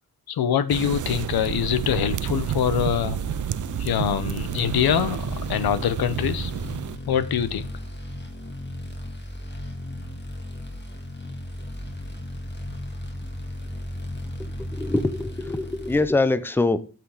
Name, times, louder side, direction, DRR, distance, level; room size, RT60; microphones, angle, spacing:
voice 1, 0.3-3.2 3.8-6.5 7.1-7.7, left 9 dB, 90° left, 14 dB, 0.8 m, -24 dB
sound 1, 0.7-7.0, right 11 dB, 60° right, 0.5 m, -30 dB
sound 2, 2.2-16.0, left 1 dB, 30° left, 1.8 m, -36 dB
voice 2, 14.4-16.8, left 2 dB, 5° left, 14 dB, 0.6 m, -24 dB
8.5 x 6.0 x 4.8 m, 0.35 s
wide cardioid pair, 110°, 36 cm